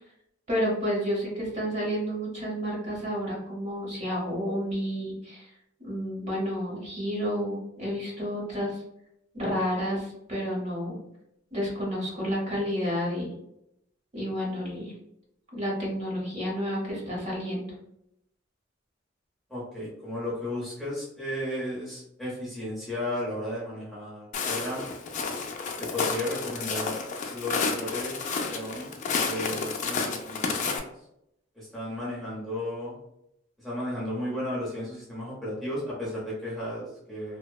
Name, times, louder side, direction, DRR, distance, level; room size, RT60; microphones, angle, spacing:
voice 1, 0.5-5.5 5.8-8.8 9.3-11.0 11.5-13.3 14.1-14.9 15.5-17.7, equal, 35° right, -4 dB, 0.9 m, -30 dB
voice 2, 19.5-24.9 25.8-27.0 27.3-28.9 29.2-30.8 31.5-33.0 33.6-37.4, left 1 dB, ahead, -7 dB, 0.7 m, -34 dB
Walk footsteps, 24.3-30.8, left 4 dB, 40° left, 0.3 m, -31 dB
2.7 x 2.1 x 2.2 m, 0.80 s
head